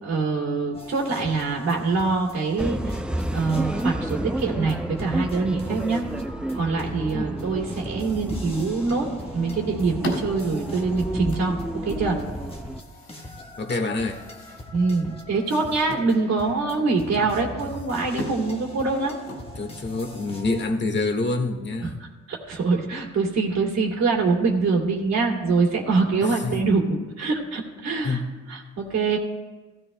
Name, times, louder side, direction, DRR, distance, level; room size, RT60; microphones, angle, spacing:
voice 1, 0.0-3.0 3.3-6.0 6.5-11.6 11.8-12.2 14.7-19.1 21.8-21.9 22.3-28.2 28.5-29.2, right 4 dB, 60° right, -2 dB, 2.5 m, -24 dB
sound 1, 0.7-20.7, left 1 dB, 20° left, 1.4 m, -41 dB
sound 2, 2.6-12.8, right 1 dB, 5° right, 0.4 m, -31 dB
sound 3, 9.2-20.1, equal, 80° left, 3.4 m, -40 dB
voice 2, 13.6-14.3 19.6-22.0 26.2-26.6 28.0-28.3, left 3 dB, 35° left, 5 dB, 1.6 m, -27 dB
15.5 x 15.5 x 2.2 m, 1.2 s
cardioid pair, 90°, 30 cm